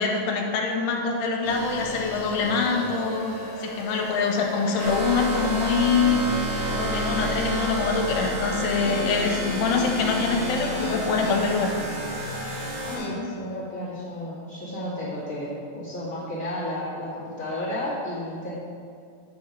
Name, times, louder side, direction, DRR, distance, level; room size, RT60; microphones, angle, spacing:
voice 1, 0.0-3.3 3.6-6.2 6.7-11.7, left 4 dB, 80° left, 1 dB, 2.8 m, -24 dB
sound 1, 1.4-13.1, left 1 dB, 65° left, 1.9 m, -35 dB
sound 2, 4.8-13.0, right 1 dB, 75° right, 3.2 m, -31 dB
voice 2, 12.8-18.6, left 1 dB, 40° left, -11 dB, 1.2 m, -32 dB
9.1 x 4.2 x 5.2 m, 2.4 s
omnidirectional pair, 4.7 m